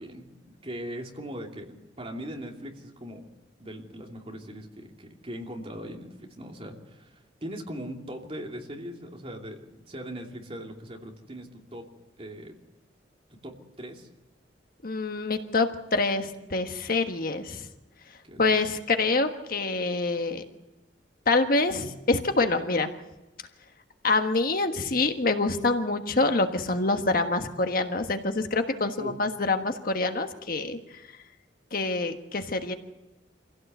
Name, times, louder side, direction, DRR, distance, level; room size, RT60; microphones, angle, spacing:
voice 1, 0.0-3.2 3.6-11.8 12.2-12.5 13.4-14.1 18.2-18.5 29.0-29.1, equal, 30° right, 1 dB, 2.9 m, -40 dB
voice 2, 14.8-17.7 18.4-20.4 21.3-22.9 24.0-30.8 31.7-32.7, left 3 dB, 50° left, 6 dB, 1.4 m, -26 dB
25.5 x 16.5 x 8.1 m, 1.1 s
head